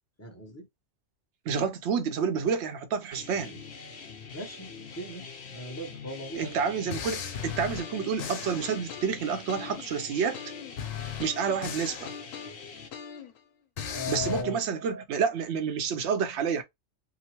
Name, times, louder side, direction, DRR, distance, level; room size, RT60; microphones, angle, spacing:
voice 1, 0.2-0.7 4.3-6.6 13.9-14.6, left 2 dB, 15° left, 0.6 m, -38 dB
voice 2, 1.5-3.6 6.4-10.4 11.2-12.1 14.1-16.6, right 6 dB, 65° right, 0.8 m, -29 dB
sound 1, 3.1-12.9, left 5 dB, 60° left, 0.9 m, -45 dB
sound 2, 6.3-6.5 6.9-9.9 10.3-13.4 13.8-14.4, left 7 dB, 85° left, 1.0 m, -38 dB
2.9 x 2.0 x 2.9 m
omnidirectional pair, 1.3 m